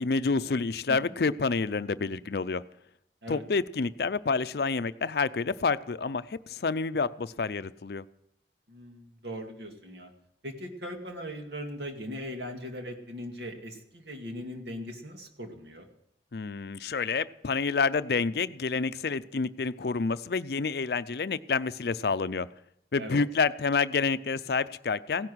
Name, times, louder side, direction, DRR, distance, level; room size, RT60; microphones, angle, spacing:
voice 1, 0.0-2.6 3.3-8.0 16.3-22.5 22.9-25.3, left 4 dB, 65° left, 14 dB, 0.5 m, -28 dB
voice 2, 0.9-1.2 3.2-3.4 8.7-10.1 10.4-15.9 23.0-23.2, equal, 75° right, 3 dB, 2.3 m, -39 dB
16.5 x 10.5 x 6.3 m, 0.76 s
head